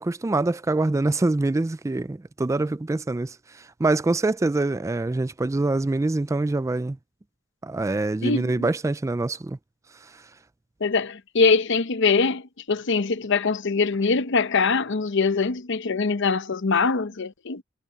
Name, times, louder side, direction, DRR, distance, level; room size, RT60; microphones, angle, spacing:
voice 1, 0.0-7.0 7.6-9.6, right 2 dB, 15° right, 0.3 m, -25 dB
voice 2, 8.2-8.7 10.8-17.6, left 4 dB, 65° left, 0.8 m, -23 dB
head